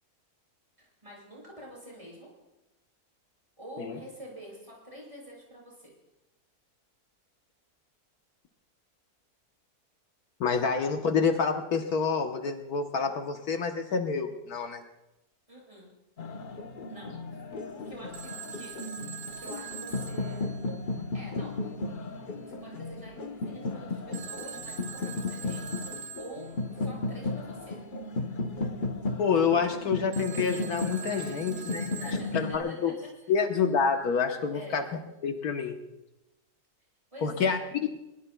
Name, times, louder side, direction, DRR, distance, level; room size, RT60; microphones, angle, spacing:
voice 1, 0.8-2.3 3.6-5.9 15.5-15.9 16.9-17.2 17.7-18.7 19.4-20.5 21.1-21.6 22.5-27.8 31.9-32.9 33.2-33.3 34.5-34.8 37.1-37.6, equal, 20° right, -4 dB, 7.2 m, -47 dB
voice 2, 10.4-14.8 29.2-32.9 33.3-34.8 35.2-35.8 37.2-37.6, left 5 dB, 75° left, 5 dB, 1.5 m, -28 dB
sound 1, 16.2-32.6, left 3 dB, 40° left, 0.8 m, -35 dB
Telephone, 18.1-21.2 24.1-26.7 30.1-32.8, right 6 dB, 80° right, 1.5 m, -43 dB
22.5 x 21.0 x 2.3 m, 0.95 s
omnidirectional pair, 1.7 m